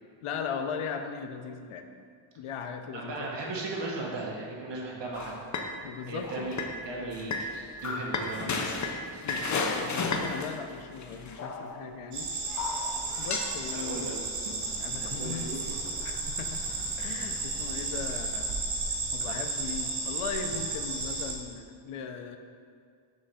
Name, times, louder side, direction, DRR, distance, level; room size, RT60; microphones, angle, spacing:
voice 1, 0.2-1.9 2.4-3.3 3.7-3.8 5.8-6.5 9.2-12.3 13.2-14.1 14.8-15.5 16.0-16.6 17.0-18.6 18.9-22.4, left 6 dB, 85° left, 7 dB, 0.6 m, -38 dB
voice 2, 2.9-5.4 6.1-7.5 7.8-8.9 13.7-14.1 15.0-15.7, right 2 dB, 55° right, -2 dB, 1.2 m, -36 dB
sound 1, 5.1-5.7 6.2-6.7 7.1-11.9 12.6-13.6, left 4 dB, 40° left, 0.5 m, -33 dB
sound 2, 12.1-21.3, right 3 dB, 80° right, 1.0 m, -33 dB
6.3 x 3.2 x 5.4 m, 2.2 s
wide cardioid pair, 135°, 49 cm